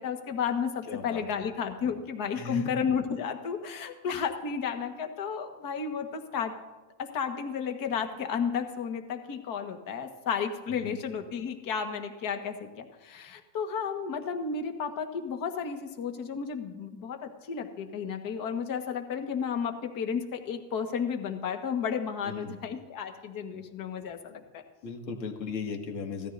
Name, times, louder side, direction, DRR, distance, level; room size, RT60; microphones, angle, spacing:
voice 1, 0.0-6.5 7.0-24.6, left 6 dB, 40° left, 5 dB, 1.5 m, -33 dB
voice 2, 0.9-1.2 2.3-2.7 10.8-11.0 22.3-22.6 23.5-23.6 24.8-26.3, left 4 dB, 80° left, 3 dB, 2.2 m, -37 dB
17.0 x 13.5 x 2.7 m, 1.2 s
supercardioid pair, 115°, 50 cm